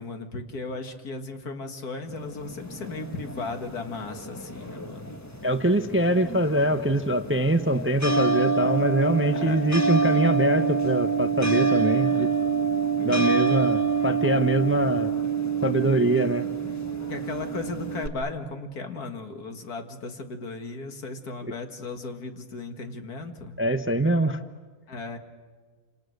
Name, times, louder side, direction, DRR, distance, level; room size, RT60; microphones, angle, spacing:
voice 1, 0.0-5.2 9.2-9.6 17.1-23.6 24.9-25.2, left 3 dB, 75° left, 6 dB, 2.4 m, -36 dB
sound 1, 2.1-18.1, right 5 dB, 10° left, 1.2 m, -27 dB
voice 2, 5.4-12.3 13.0-15.1 15.6-16.5 23.6-24.4, right 1 dB, 10° right, 9 dB, 0.6 m, -23 dB
28.0 x 27.0 x 6.6 m, 1.4 s
omnidirectional pair, 1.6 m